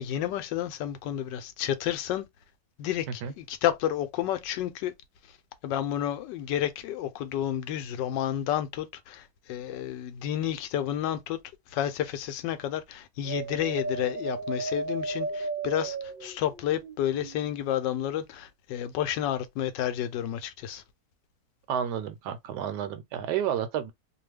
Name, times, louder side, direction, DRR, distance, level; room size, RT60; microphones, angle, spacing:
voice 1, 0.0-2.2 2.8-4.9 5.6-11.4 11.7-16.0 16.2-20.8, left 11 dB, 90° left, 1.3 m, -30 dB
sound 1, 13.2-17.5, right 3 dB, 45° right, 0.7 m, -34 dB
voice 2, 21.7-23.9, right 9 dB, 75° right, 1.2 m, -31 dB
2.9 x 2.2 x 3.2 m
omnidirectional pair, 1.9 m